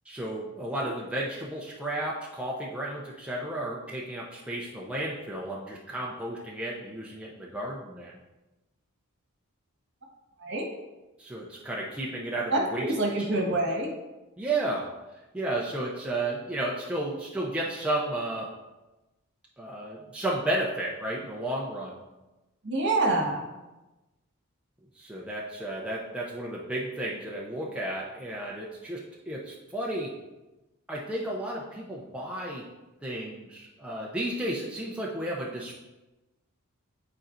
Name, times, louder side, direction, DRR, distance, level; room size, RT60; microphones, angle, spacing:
voice 1, 0.1-8.2 11.2-12.9 13.3-13.5 14.4-14.9 15.3-18.5 19.6-22.0 25.0-30.1 30.9-32.7 33.0-35.8, right 1 dB, 5° right, -4 dB, 0.6 m, -33 dB
voice 2, 12.5-13.9 22.6-23.5, right 2 dB, 55° right, 0 dB, 1.4 m, -26 dB
9.4 x 4.3 x 2.6 m, 1.1 s
head